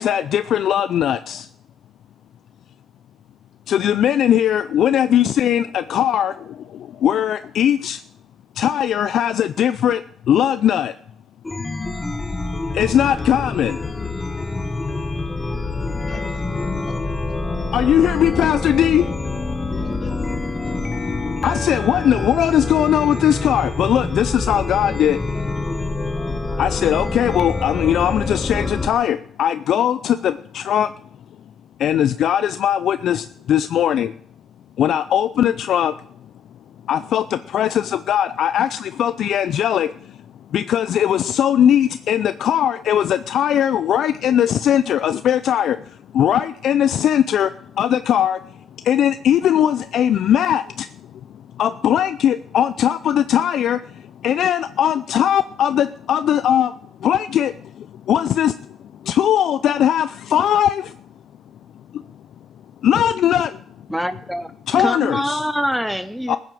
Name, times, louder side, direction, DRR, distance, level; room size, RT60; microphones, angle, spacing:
voice 1, 0.0-1.5 3.7-8.0 8.6-10.9 12.7-13.8 17.7-19.1 21.4-25.2 26.6-30.9 31.8-34.1 34.8-35.9 36.9-40.1 40.5-48.4 48.8-50.9 51.6-56.7 57.0-58.5 59.0-61.0 61.9-62.0 62.8-63.6 64.7-65.4 66.3-66.4, left 10 dB, 70° left, 0.5 m, -19 dB
Chime, 11.4-28.9, left 3 dB, 20° left, 1.3 m, -26 dB
voice 2, 15.5-16.9 17.6-18.3 19.5-20.1 20.9-21.0, left 4 dB, 45° left, 4.1 m, -44 dB
voice 3, 63.9-64.5 64.7-66.4, equal, ahead, 0.7 m, -24 dB
15.0 x 7.8 x 7.6 m
cardioid pair, 90°, 0 cm